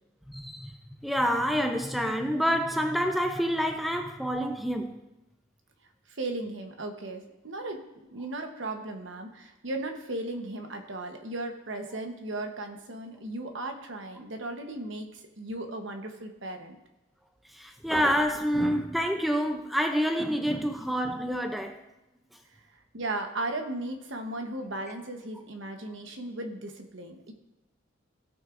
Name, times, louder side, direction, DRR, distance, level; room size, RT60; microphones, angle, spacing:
voice 1, 0.3-5.0 17.5-21.8, equal, ahead, 0.5 m, -28 dB
voice 2, 6.1-7.8 8.1-16.8 22.5-27.3, right 2 dB, 70° right, 1.1 m, -36 dB
17.0 x 6.2 x 2.6 m
head